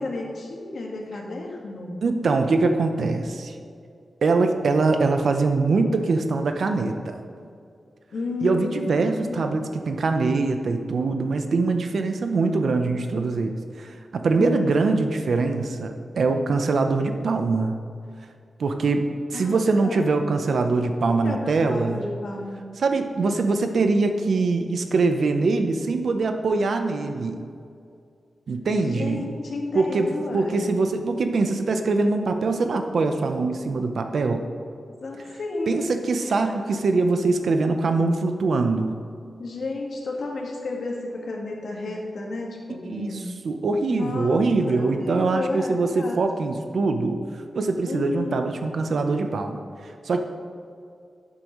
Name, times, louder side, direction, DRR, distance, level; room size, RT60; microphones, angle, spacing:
voice 1, 0.0-2.0 8.1-9.7 14.4-14.9 19.3-20.0 21.1-22.6 28.8-30.6 35.0-35.9 39.4-43.2 43.9-46.2 47.8-48.5, left 2 dB, 70° left, -1 dB, 1.7 m, -32 dB
voice 2, 2.0-3.6 4.2-7.2 8.4-17.8 18.6-22.0 22.8-27.4 28.5-29.3 29.7-34.5 35.7-38.9 42.8-43.2 43.4-47.2 47.5-50.2, right 3 dB, 65° right, 6 dB, 0.7 m, -23 dB
11.5 x 8.3 x 3.1 m, 2.4 s
wide cardioid pair, 150°, 0 cm